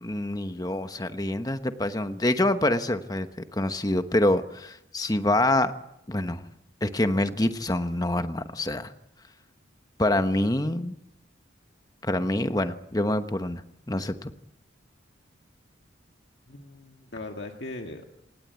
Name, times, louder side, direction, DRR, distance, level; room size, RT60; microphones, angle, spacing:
voice 1, 0.0-5.7 6.1-6.4 6.8-8.9 10.0-11.0 12.0-13.6 13.9-14.3, left 1 dB, 20° left, 9 dB, 1.0 m, -26 dB
voice 2, 16.5-18.1, left 2 dB, 60° left, 3 dB, 1.9 m, -39 dB
27.0 x 19.0 x 8.2 m, 0.83 s
head